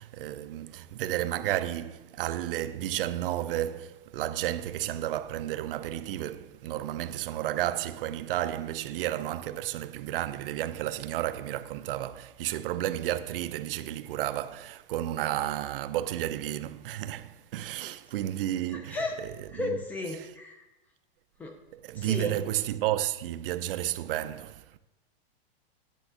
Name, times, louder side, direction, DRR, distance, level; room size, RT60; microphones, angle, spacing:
voice 1, 0.0-19.8 21.7-24.8, right 13 dB, 60° right, 0.6 m, -32 dB
voice 2, 19.5-20.6 21.4-21.5 21.9-22.4, left 2 dB, 5° left, 0.4 m, -34 dB
10.5 x 3.5 x 6.8 m
supercardioid pair, 165°, 31 cm